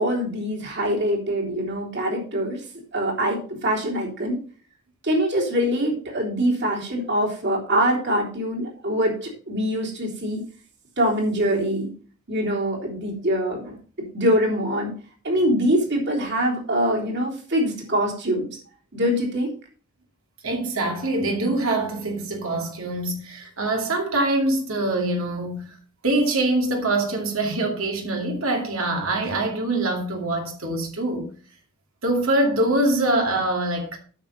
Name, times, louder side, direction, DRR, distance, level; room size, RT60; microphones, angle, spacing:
voice 1, 0.0-2.6 2.9-4.4 5.0-10.4 11.0-11.9 12.3-13.8 14.1-14.9 15.2-18.5 18.9-19.5, equal, 50° right, 3.4 m, -24 dB
voice 2, 20.4-25.8 26.0-31.3 32.0-34.0, right 2 dB, 70° right, 2.5 m, -24 dB
9.0 x 7.1 x 5.3 m
head